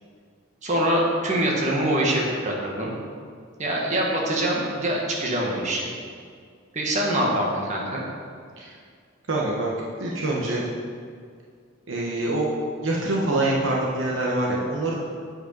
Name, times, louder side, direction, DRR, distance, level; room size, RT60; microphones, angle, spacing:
voice 1, 0.6-2.9 3.6-5.9 6.7-8.0, right 1 dB, 35° right, -3 dB, 1.4 m, -24 dB
voice 2, 9.3-9.7 10.0-10.6 11.9-12.6 12.8-15.0, right 2 dB, 65° right, -4 dB, 1.0 m, -25 dB
8.0 x 5.1 x 5.2 m, 2.1 s
head